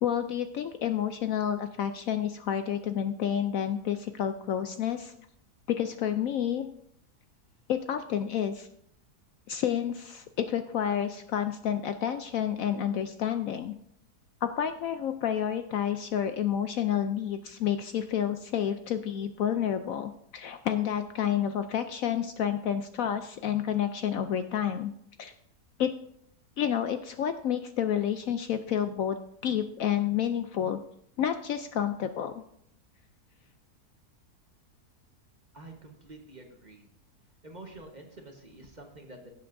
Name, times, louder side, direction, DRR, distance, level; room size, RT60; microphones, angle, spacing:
voice 1, 0.0-5.1 5.8-6.7 7.7-8.7 9.5-13.7 14.4-24.9 25.2-25.3 25.8-25.9 26.6-29.2 29.4-30.8 31.2-32.4, left 9 dB, 70° left, 8 dB, 0.9 m, -29 dB
voice 2, 35.5-36.9 37.4-39.3, right 2 dB, 30° right, 2 dB, 1.3 m, -48 dB
17.5 x 7.7 x 2.6 m, 0.72 s
omnidirectional pair, 1.7 m